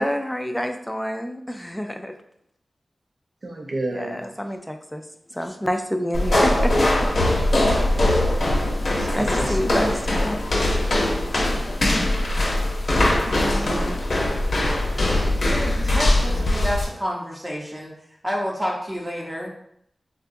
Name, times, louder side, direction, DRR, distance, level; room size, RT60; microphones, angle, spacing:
voice 1, 0.0-2.1 3.9-5.0 5.3-6.9 9.1-10.4, equal, 5° left, 6 dB, 0.3 m, -28 dB
voice 2, 3.4-4.2 9.0-9.3 9.6-9.9 12.9-13.8, right 1 dB, 60° right, 2 dB, 0.6 m, -31 dB
sound 1, 6.1-16.9, left 1 dB, 75° left, 0.7 m, -21 dB
voice 3, 15.4-17.9 18.2-19.5, equal, 15° right, -2 dB, 0.8 m, -29 dB
3.7 x 2.2 x 2.6 m, 0.72 s
wide cardioid pair, 65°, 0 cm